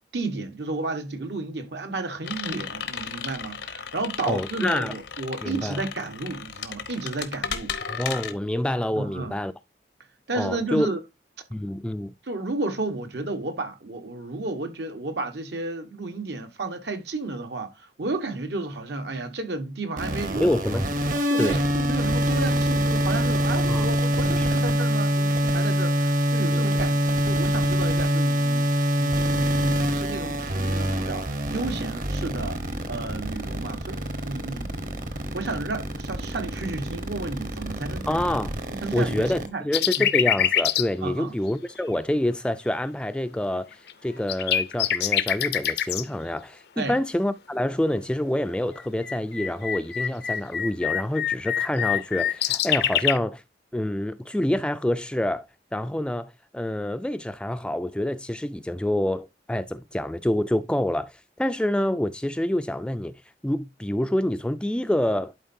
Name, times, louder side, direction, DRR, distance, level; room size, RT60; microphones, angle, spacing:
voice 1, 0.1-7.8 8.9-9.4 10.3-11.0 12.2-20.5 21.3-32.6 32.9-34.7 35.1-38.0 38.7-39.7 40.0-40.1 41.0-41.3 46.8-47.0, right 3 dB, 75° right, 1.2 m, -32 dB
sound 1, 2.2-8.3, left 7 dB, 85° left, 1.0 m, -35 dB
voice 2, 4.3-4.9 5.4-5.8 7.9-9.5 10.4-10.9 11.5-12.1 20.3-20.8 21.4-21.6 23.7-23.9 24.2-24.5 26.5-26.8 38.1-38.5 38.9-43.7 44.0-53.4 53.7-55.5 55.7-63.1 63.4-65.3, left 1 dB, 5° left, 0.3 m, -27 dB
sound 2, 20.0-39.5, equal, 50° right, 1.0 m, -25 dB
sound 3, 39.7-40.9 41.5-41.6 43.7-43.9 44.3-46.0 48.8-53.2, left 10 dB, 65° left, 0.5 m, -25 dB
11.0 x 4.5 x 2.6 m
head